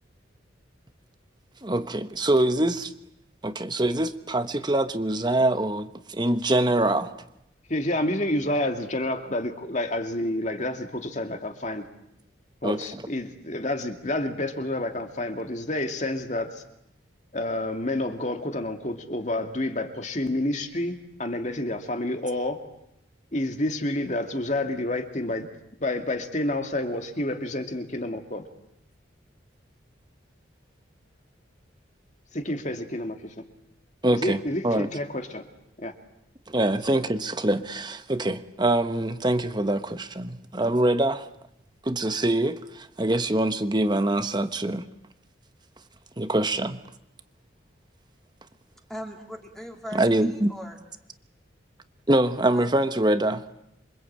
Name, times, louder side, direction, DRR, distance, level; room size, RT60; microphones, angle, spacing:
voice 1, 1.6-2.9 3.4-7.1 12.6-12.8 34.0-34.4 34.6-34.9 36.5-41.3 41.8-44.9 46.2-46.8 49.9-50.5 52.1-53.5, right 1 dB, 20° right, 10 dB, 1.2 m, -24 dB
voice 2, 7.7-11.8 12.6-16.6 17.3-22.6 23.3-25.5 25.8-28.4 32.3-33.4 34.1-35.5 35.8-35.9, left 1 dB, 40° left, 6 dB, 2.4 m, -29 dB
voice 3, 48.9-50.8 52.5-52.8, equal, ahead, 2 dB, 2.6 m, -39 dB
27.5 x 24.5 x 8.7 m, 0.80 s
head